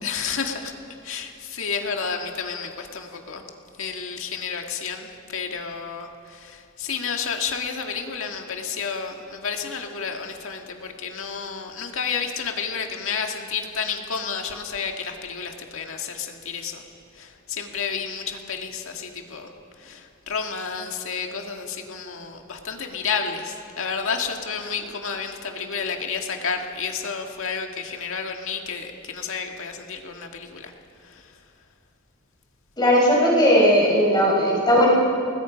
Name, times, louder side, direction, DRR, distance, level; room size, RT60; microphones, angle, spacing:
voice 1, 0.0-0.7 1.0-3.4 3.8-16.8 17.1-19.5 19.8-30.7 31.0-31.3, left 6 dB, 65° left, 3 dB, 1.9 m, -31 dB
voice 2, 32.8-34.9, equal, 20° left, -3 dB, 5.2 m, -17 dB
29.5 x 20.0 x 5.1 m, 2.5 s
head